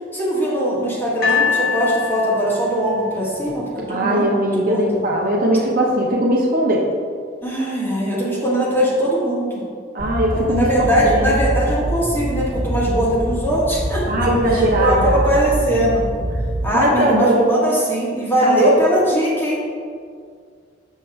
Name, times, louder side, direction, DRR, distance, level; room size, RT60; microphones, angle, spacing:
voice 1, 0.1-4.2 4.5-5.0 7.4-9.6 10.3-16.1 16.6-19.6, equal, 10° left, -7 dB, 1.7 m, -20 dB
sound 1, 1.2-4.4 5.2-5.3, left 5 dB, 50° left, 1.2 m, -24 dB
voice 2, 3.9-6.9 9.9-11.4 14.1-15.2 16.7-17.5 18.4-18.8, right 1 dB, 50° right, -2 dB, 0.9 m, -19 dB
sound 2, 10.0-16.7, right 1 dB, 80° right, 1.1 m, -24 dB
6.6 x 6.1 x 3.5 m, 2.1 s
head